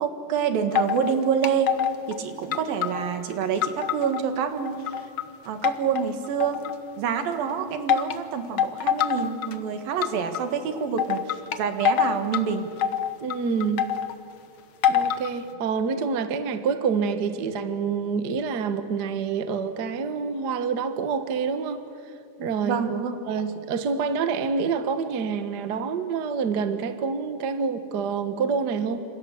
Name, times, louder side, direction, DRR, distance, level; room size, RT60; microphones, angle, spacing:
voice 1, 0.0-1.8 2.1-4.8 5.5-6.7 7.0-12.7 22.6-23.4, right 7 dB, 85° right, 3.5 m, -27 dB
sound 1, 0.8-1.2 1.4-2.2 2.5-4.2 4.6-5.2 5.6-6.9 7.9-8.2 8.6-9.5 10.0-10.4 11.0-12.4 12.8-14.1 14.8-15.3, left 9 dB, 90° left, 1.1 m, -25 dB
voice 2, 13.2-13.9 14.9-21.8 22.4-22.8 23.3-29.0, right 5 dB, 65° right, 1.0 m, -27 dB
27.5 x 27.0 x 7.7 m
omnidirectional pair, 4.0 m